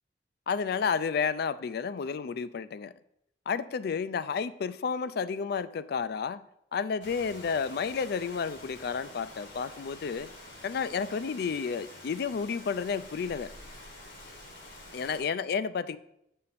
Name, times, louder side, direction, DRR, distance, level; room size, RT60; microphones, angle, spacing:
voice 1, 0.5-2.9 3.5-6.4 6.7-10.3 10.6-13.5 14.9-16.0, left 6 dB, 60° left, 0.4 m, -31 dB
Rain, 7.0-15.2, left 1 dB, 85° left, 2.3 m, -48 dB
8.6 x 5.6 x 4.1 m
head